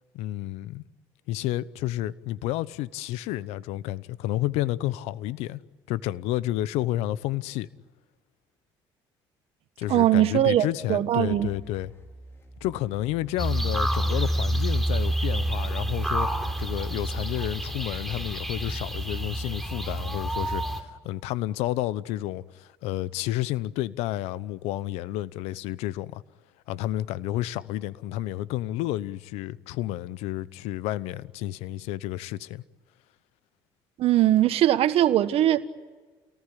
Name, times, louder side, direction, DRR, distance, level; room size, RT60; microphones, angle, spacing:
voice 1, 0.1-0.8 1.3-5.6 5.9-7.7 9.8-11.9 12.6-16.3 16.6-26.2 26.7-32.6, left 15 dB, 80° left, 0.9 m, -30 dB
voice 2, 9.9-11.5 34.0-35.6, right 12 dB, 65° right, 1.5 m, -21 dB
sound 1, 11.2-18.2, right 2 dB, 25° left, 5.2 m, -48 dB
sound 2, 13.4-20.8, right 1 dB, ahead, 3.6 m, -28 dB
29.5 x 19.0 x 10.0 m
supercardioid pair, 65°, 11 cm